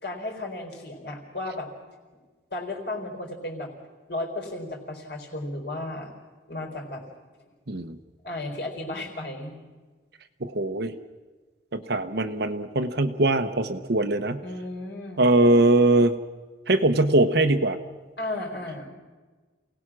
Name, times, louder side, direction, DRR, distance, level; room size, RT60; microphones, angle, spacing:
voice 1, 0.0-1.7 2.5-3.7 4.1-6.1 6.5-7.0 8.2-9.6 14.4-15.3 18.2-18.9, left 2 dB, 55° left, 2 dB, 4.3 m, -34 dB
voice 2, 7.7-8.0 10.4-10.9 11.7-14.4 15.2-16.2 16.7-17.8, right 2 dB, 55° right, 7 dB, 1.0 m, -21 dB
28.0 x 18.0 x 6.2 m, 1.3 s
head